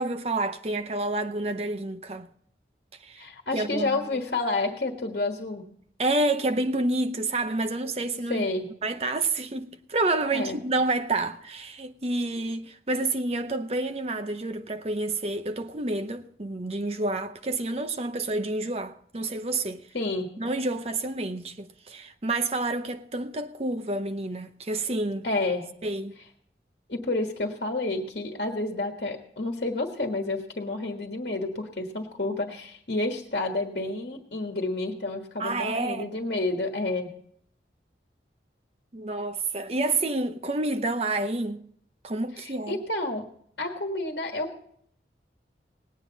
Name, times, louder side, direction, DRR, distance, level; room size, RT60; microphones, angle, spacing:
voice 1, 0.0-2.3 3.0-3.3 3.5-4.0 6.0-8.5 8.8-19.9 20.4-25.3 25.8-26.1 35.4-36.1 38.9-41.7 42.0-42.8, right 2 dB, 35° right, 0.7 m, -29 dB
voice 2, 3.2-5.7 8.3-8.7 10.3-10.6 19.9-20.3 25.2-25.7 26.9-37.1 42.4-43.3 43.6-44.7, left 2 dB, 60° left, 1.5 m, -30 dB
19.0 x 9.1 x 4.0 m
head